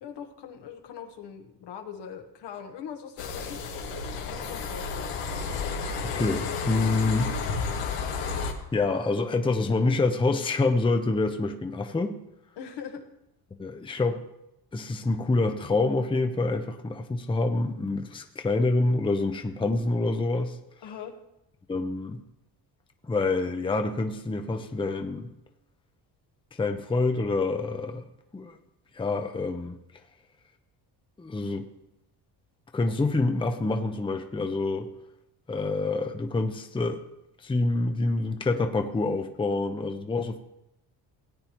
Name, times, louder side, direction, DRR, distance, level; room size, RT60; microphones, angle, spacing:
voice 1, 0.0-3.6 4.2-5.5 12.6-13.0 20.8-21.1, left 7 dB, 70° left, 4 dB, 1.3 m, -41 dB
sound 1, 3.2-8.5, left 5 dB, 90° left, 1.5 m, -31 dB
voice 2, 6.1-7.3 8.7-12.2 13.6-14.2 14.7-20.6 21.7-22.2 23.0-25.3 26.5-28.0 28.3-28.6 28.9-29.8 31.2-31.7 32.7-34.9 35.5-37.0 37.4-40.4, left 3 dB, 10° left, 6 dB, 0.7 m, -27 dB
17.0 x 8.6 x 3.0 m, 0.86 s
cardioid pair, 95°, 43 cm